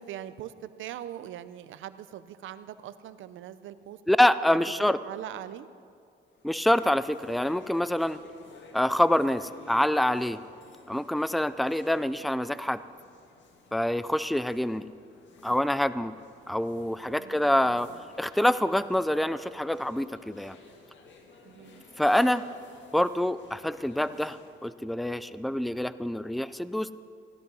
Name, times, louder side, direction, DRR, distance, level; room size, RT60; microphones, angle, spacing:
voice 1, 0.0-4.0 4.5-5.7 17.1-18.0 21.4-21.8, right 11 dB, 75° right, 14 dB, 0.7 m, -42 dB
voice 2, 4.1-5.0 6.4-8.2 8.7-10.4 10.9-12.8 13.7-14.9 15.4-16.1 16.5-17.9 18.2-20.6 22.0-22.5 22.9-26.9, left 1 dB, ahead, 15 dB, 0.4 m, -26 dB
sound 1, 6.3-24.7, left 3 dB, 65° left, 2.0 m, -54 dB
16.5 x 12.0 x 5.5 m, 2.3 s
cardioid pair, 90°, 20 cm